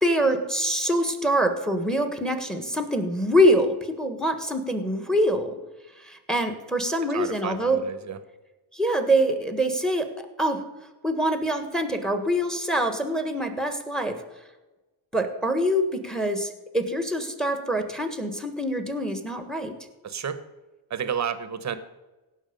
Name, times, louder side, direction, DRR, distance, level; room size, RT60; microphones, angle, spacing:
voice 1, 0.0-5.6 6.0-7.8 8.7-10.6 11.0-14.1 15.1-19.8, equal, ahead, 7 dB, 1.5 m, -25 dB
voice 2, 7.1-8.2 20.0-20.4 20.9-21.8, right 8 dB, 35° right, 12 dB, 1.0 m, -31 dB
17.0 x 6.4 x 5.3 m, 1.1 s
cardioid pair, 115°, 50 cm